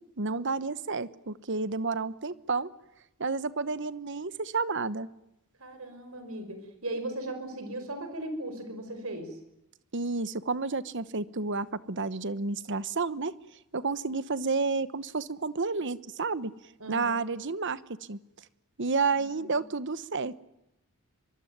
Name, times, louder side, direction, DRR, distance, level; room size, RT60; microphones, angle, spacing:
voice 1, 0.2-2.7 3.2-5.1 9.9-13.3 13.7-16.5 16.9-17.8 18.1-18.2 18.8-20.4, right 4 dB, 55° right, 16 dB, 1.1 m, -30 dB
voice 2, 5.6-9.4 16.8-17.2 19.1-19.6, right 1 dB, 75° right, 8 dB, 5.2 m, -38 dB
24.0 x 23.5 x 9.5 m, 0.87 s
head